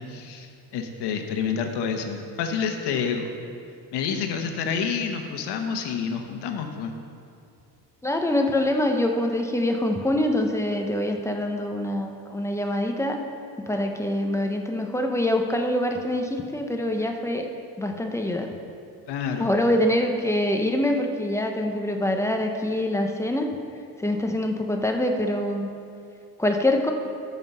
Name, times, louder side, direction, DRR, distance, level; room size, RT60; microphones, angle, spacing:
voice 1, 0.0-3.3 3.9-6.9 19.1-19.5, left 6 dB, 85° left, 5 dB, 1.2 m, -28 dB
voice 2, 8.0-13.2 13.6-17.5 17.8-18.5 19.4-23.5 24.0-25.7 26.4-26.9, left 1 dB, 5° left, 3 dB, 0.8 m, -25 dB
13.5 x 5.6 x 5.5 m, 2.4 s
cardioid pair, 125°, 39 cm